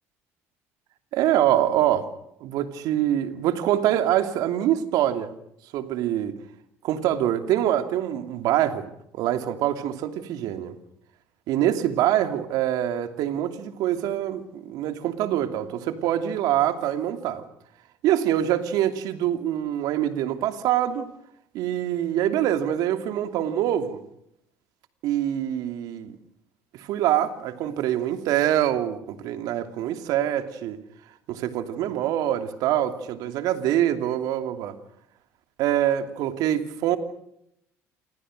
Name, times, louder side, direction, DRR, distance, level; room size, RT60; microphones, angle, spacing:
voice 1, 1.1-2.1 2.4-5.3 5.7-6.4 6.8-8.9 9.1-10.7 11.5-17.4 18.0-21.1 21.5-24.0 25.0-26.2 26.7-30.8 31.3-34.8 35.6-37.0, right 11 dB, 70° right, 8 dB, 2.7 m, -25 dB
28.5 x 25.0 x 6.6 m, 0.77 s
supercardioid pair, 75°, 7 cm